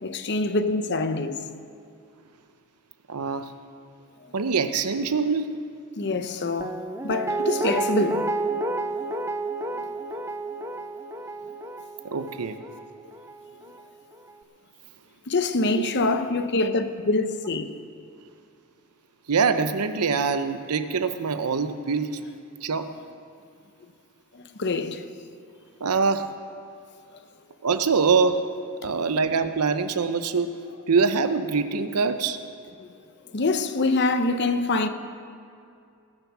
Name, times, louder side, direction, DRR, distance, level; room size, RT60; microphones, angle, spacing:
voice 1, 0.0-1.4 6.0-8.3 9.7-10.1 15.3-17.7 24.3-25.0 32.8-32.9 33.3-34.9, left 3 dB, 50° left, 0.8 m, -25 dB
voice 2, 3.1-3.5 4.3-5.5 12.0-12.6 15.7-16.0 19.3-22.2 22.6-22.9 25.8-26.3 27.6-28.5 28.8-30.5 30.9-32.4, right 5 dB, 90° right, 0.7 m, -24 dB
Guitar, 6.6-13.6 13.9-14.0, right 2 dB, 10° right, 0.4 m, -30 dB
20.5 x 7.1 x 6.1 m
head